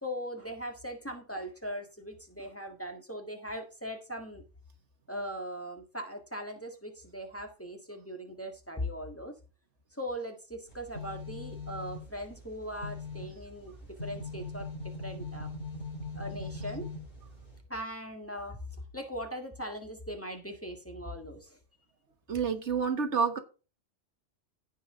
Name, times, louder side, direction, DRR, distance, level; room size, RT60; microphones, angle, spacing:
voice 1, 0.0-4.4 5.1-9.3 10.0-13.7 14.0-14.7 15.0-15.5 16.1-16.9 17.7-18.6 18.9-21.6, equal, 10° left, 1.6 m, -39 dB
sound 1, 10.7-17.6, left 3 dB, 45° left, 4.4 m, -41 dB
voice 2, 22.3-23.4, right 6 dB, 65° right, 1.5 m, -28 dB
15.5 x 5.5 x 3.7 m
omnidirectional pair, 1.3 m